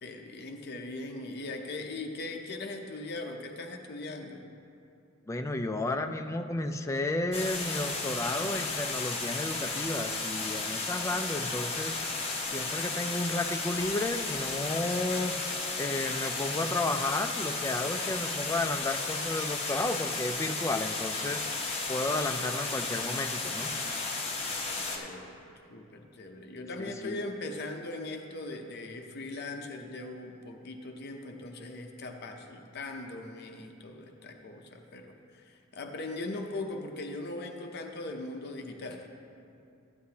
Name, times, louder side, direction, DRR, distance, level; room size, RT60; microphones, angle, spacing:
voice 1, 0.0-4.4 24.7-25.4 25.7-39.1, left 2 dB, 50° left, 4 dB, 0.6 m, -40 dB
voice 2, 5.3-21.5 21.9-23.7 26.8-27.2, left 2 dB, 15° left, 6 dB, 0.3 m, -32 dB
sound 1, 7.3-25.0, left 3 dB, 30° left, 1.0 m, -34 dB
12.5 x 9.6 x 2.8 m, 2.6 s
head